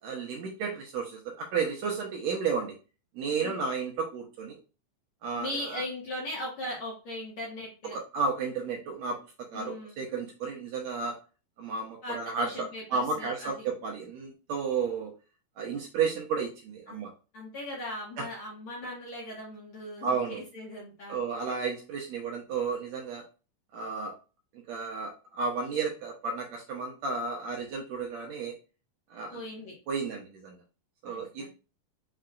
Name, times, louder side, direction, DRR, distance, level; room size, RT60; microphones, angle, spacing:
voice 1, 0.0-2.7 3.1-4.6 5.2-5.8 7.9-9.2 9.5-11.1 11.6-12.5 12.9-15.1 15.6-17.1 18.2-18.3 20.0-20.4 21.1-23.2 23.7-24.1 24.7-28.5 29.1-29.4 29.9-30.6 31.0-31.5, right 5 dB, 80° right, 0 dB, 1.5 m, -32 dB
voice 2, 5.3-8.0 9.5-10.0 12.0-13.7 16.9-17.1 17.3-21.6 29.3-29.7 31.0-31.5, left 1 dB, 75° left, -4 dB, 1.2 m, -39 dB
5.7 x 2.1 x 3.7 m, 0.33 s
omnidirectional pair, 3.9 m